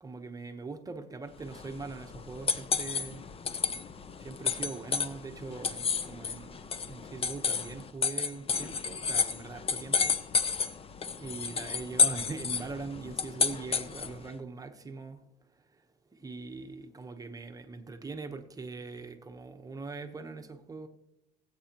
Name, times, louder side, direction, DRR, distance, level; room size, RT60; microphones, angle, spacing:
voice 1, 0.0-3.2 4.2-10.2 11.2-15.2 16.1-20.9, right 4 dB, 20° right, 1.0 m, -42 dB
sound 1, 1.4-14.3, left 5 dB, 35° left, 0.7 m, -31 dB
20.0 x 8.3 x 3.0 m
cardioid pair, 110°, 17 cm